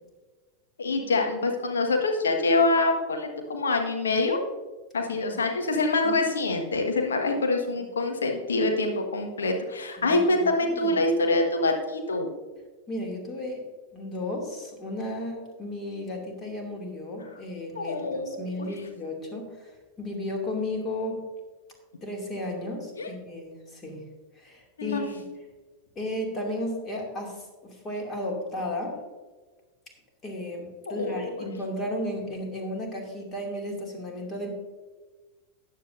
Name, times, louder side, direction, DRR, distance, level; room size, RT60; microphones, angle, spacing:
voice 1, 0.8-4.4 4.9-12.3 17.7-18.7 23.0-23.1 24.8-25.0 30.9-31.4, left 2 dB, 70° left, 3 dB, 1.5 m, -25 dB
voice 2, 5.1-5.4 6.0-6.2 10.0-11.0 12.9-13.6 13.9-19.7 20.0-21.2 22.0-24.0 24.4-25.2 26.0-29.0 30.2-34.5, left 1 dB, 25° left, 1 dB, 2.6 m, -34 dB
14.0 x 9.3 x 2.6 m, 1.3 s
figure-of-eight pair, 90°, 0 cm